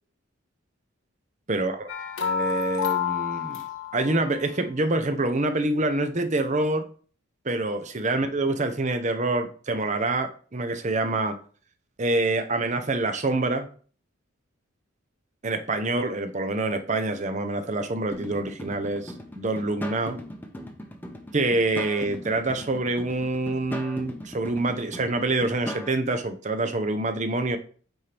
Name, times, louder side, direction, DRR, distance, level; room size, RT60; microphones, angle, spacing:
voice 1, 1.5-1.9 2.2-3.6 3.9-6.9 7.4-11.4 12.0-13.7 15.4-20.2 21.3-27.6, right 2 dB, 35° right, 8 dB, 0.7 m, -26 dB
sound 1, 1.9-4.4, left 8 dB, 75° left, 0.9 m, -29 dB
sound 2, 18.1-25.9, equal, 10° left, 0.7 m, -39 dB
8.9 x 4.4 x 3.4 m, 0.43 s
head